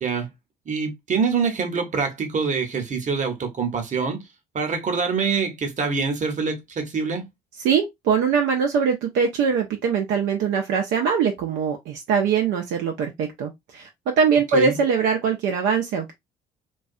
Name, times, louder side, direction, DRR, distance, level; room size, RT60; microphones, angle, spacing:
voice 1, 0.7-4.2 4.5-7.2 14.5-14.8, right 5 dB, 35° right, 0.9 m, -25 dB
voice 2, 7.6-13.9 14.2-16.1, right 6 dB, 65° right, 0.5 m, -22 dB
2.3 x 2.3 x 2.5 m
hypercardioid pair, 55°, 21 cm